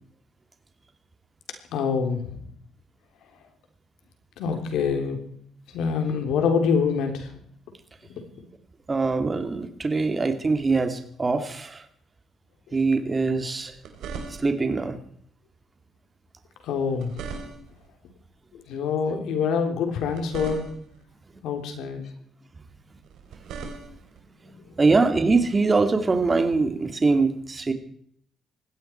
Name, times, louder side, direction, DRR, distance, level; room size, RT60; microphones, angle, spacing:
voice 1, 1.7-2.4 4.4-5.2 5.7-7.3 8.1-8.2 13.3-13.4 16.6-17.1 18.7-20.7 21.4-22.1, left 6 dB, 85° left, 5 dB, 3.4 m, -25 dB
voice 2, 8.9-11.9 12.7-13.7 14.3-15.0 19.1-19.2 22.9-23.0 24.4-27.7, right 3 dB, 30° right, 7 dB, 2.5 m, -23 dB
sound 1, 13.6-14.7 16.7-17.9 19.9-21.0 23.0-24.2 26.2-26.4, right 5 dB, 80° right, 3.7 m, -39 dB
19.5 x 16.0 x 4.6 m, 0.62 s
cardioid pair, 90°, 0 cm